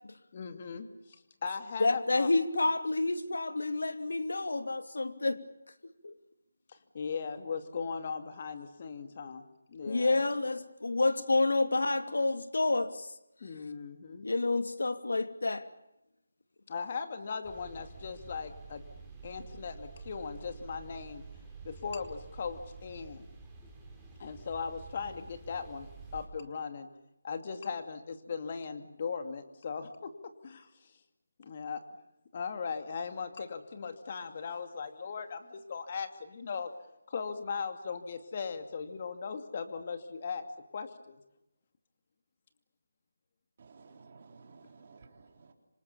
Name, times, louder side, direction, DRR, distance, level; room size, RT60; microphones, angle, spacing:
voice 1, 0.3-0.9 1.4-2.3 6.7-9.4 9.7-10.2 13.4-14.3 16.7-18.8 19.2-21.2 21.6-23.2 24.2-26.9 27.2-30.7 31.4-31.8 32.3-36.7 37.1-40.4 40.7-41.2, left 5 dB, 30° left, 2.5 m, -38 dB
voice 2, 1.8-5.4 5.8-6.1 9.9-13.1 14.2-15.7, left 2 dB, 80° left, 2.8 m, -29 dB
sound 1, 17.4-26.3, right 4 dB, 5° right, 4.0 m, -49 dB
voice 3, 43.6-45.5, right 4 dB, 35° right, 3.8 m, -55 dB
27.0 x 25.5 x 7.1 m
figure-of-eight pair, 170°, 0 cm